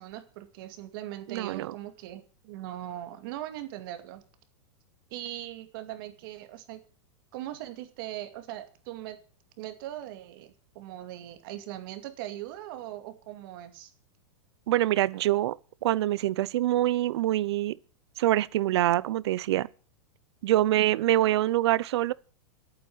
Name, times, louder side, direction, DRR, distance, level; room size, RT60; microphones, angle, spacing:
voice 1, 0.0-4.2 5.1-6.8 7.3-9.2 9.6-13.9, right 13 dB, 50° right, 2.3 m, -40 dB
voice 2, 1.3-1.7 14.7-15.6 15.8-17.8 18.2-19.7 20.4-22.1, right 14 dB, 65° right, 0.7 m, -25 dB
11.5 x 8.9 x 7.9 m
supercardioid pair, 160°, 15 cm